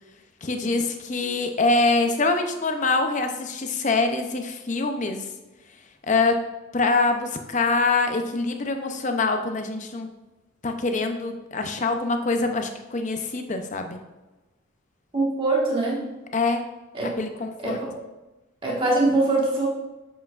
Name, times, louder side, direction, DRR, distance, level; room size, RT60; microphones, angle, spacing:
voice 1, 0.4-5.3 6.1-6.4 6.7-10.1 10.6-14.0 16.3-16.6 17.2-17.8, left 3 dB, 35° left, 5 dB, 0.6 m, -24 dB
voice 2, 15.1-16.0 16.9-17.1 17.6-17.9 18.6-19.7, right 2 dB, 25° right, -5 dB, 1.5 m, -23 dB
7.2 x 5.9 x 2.5 m, 1.1 s
head